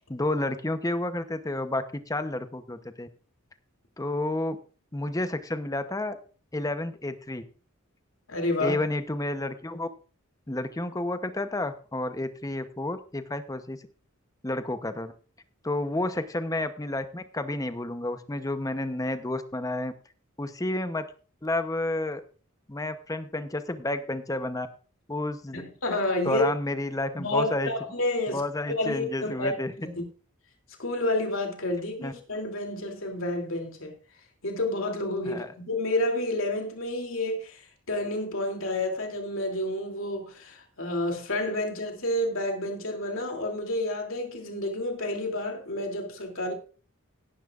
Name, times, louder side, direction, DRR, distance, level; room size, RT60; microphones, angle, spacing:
voice 1, 0.1-3.1 4.0-4.6 4.9-6.2 6.5-7.4 8.6-9.9 10.5-13.8 14.4-15.1 15.6-19.9 20.4-21.1 21.4-22.2 22.7-24.7 25.1-25.6 26.2-27.7 28.3-29.7 32.0-32.1 35.2-35.5, left 2 dB, 15° left, 0.8 m, -30 dB
voice 2, 8.3-8.8 25.5-26.4 27.2-28.4 28.8-29.5 29.8-29.9 30.8-33.9 34.4-37.6 37.9-46.5, left 1 dB, 70° left, 2.9 m, -29 dB
17.5 x 10.0 x 2.5 m
head